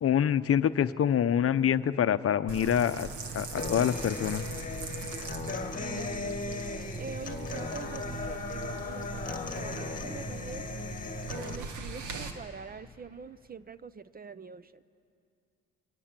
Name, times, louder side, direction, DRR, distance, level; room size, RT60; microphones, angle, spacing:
voice 1, 0.0-3.1 3.3-4.4, left 9 dB, 50° left, 12 dB, 0.7 m, -26 dB
sound 1, 2.5-12.3, right 3 dB, 80° right, 2.3 m, -40 dB
Human voice / Acoustic guitar, 3.6-11.6, left 4 dB, 25° left, 2.1 m, -37 dB
voice 2, 5.8-6.6 7.0-10.7 11.3-14.7, right 5 dB, 30° right, 16 dB, 0.7 m, -44 dB
29.0 x 23.5 x 7.5 m, 2.6 s
cardioid pair, 90°, 30 cm